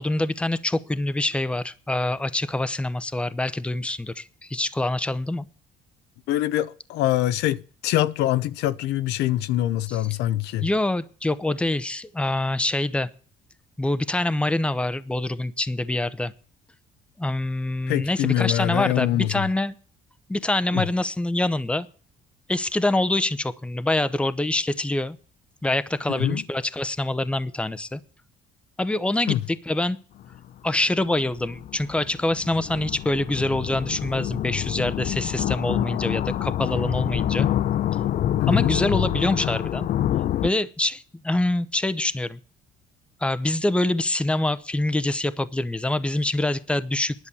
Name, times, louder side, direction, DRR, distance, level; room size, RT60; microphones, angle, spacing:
voice 1, 0.0-5.5 9.9-10.1 10.6-13.1 13.8-16.3 17.2-19.7 20.3-21.9 22.5-25.2 25.6-28.0 28.8-30.0 30.6-37.5 38.5-39.9 40.4-42.4 43.2-47.1, left 2 dB, 5° left, 0.8 m, -25 dB
voice 2, 6.3-10.7 17.9-19.4 20.7-20.8 26.1-26.4 29.3-29.4 38.4-38.8, left 13 dB, 85° left, 0.8 m, -24 dB
sound 1, 30.2-30.4 31.0-40.5, left 12 dB, 55° left, 0.5 m, -27 dB
11.0 x 7.2 x 8.4 m
cardioid pair, 110°, 17 cm